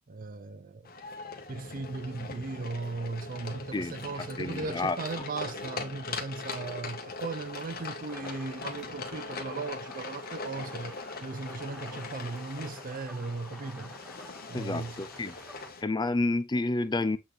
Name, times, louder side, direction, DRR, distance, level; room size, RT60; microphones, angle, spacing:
voice 1, 0.1-0.9 1.5-13.9 14.5-15.1, right 3 dB, 45° right, 0.6 m, -37 dB
sound 1, 0.8-15.8, left 3 dB, 50° left, 1.4 m, -41 dB
voice 2, 4.4-5.0 14.5-15.4 15.8-17.2, left 2 dB, 20° left, 0.5 m, -29 dB
sound 2, 8.1-15.7, equal, ahead, 1.1 m, -50 dB
8.0 x 4.0 x 3.3 m
head